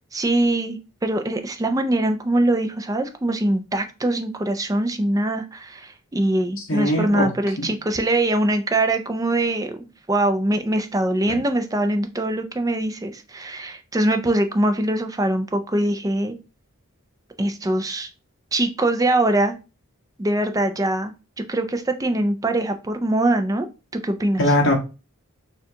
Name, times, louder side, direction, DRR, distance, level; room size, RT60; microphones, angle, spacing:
voice 1, 0.1-16.4 17.4-18.1 18.5-19.6 20.2-21.1 21.4-23.7 23.9-24.4, right 1 dB, 15° right, 6 dB, 0.4 m, -23 dB
voice 2, 6.6-7.3 7.6-7.7 11.3-11.4 24.4-24.7, left 1 dB, 65° left, 0 dB, 1.5 m, -21 dB
6.6 x 2.4 x 2.8 m, 0.30 s
head